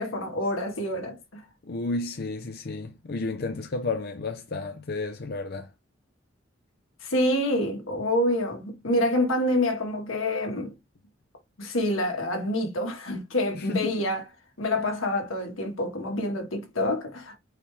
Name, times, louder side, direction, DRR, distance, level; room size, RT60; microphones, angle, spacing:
voice 1, 0.0-1.4 7.0-10.7 11.6-14.2 14.6-17.4, left 1 dB, 90° left, 1.5 m, -27 dB
voice 2, 1.6-5.7 13.6-14.0, left 3 dB, 50° left, 0.6 m, -32 dB
4.7 x 3.2 x 3.4 m
head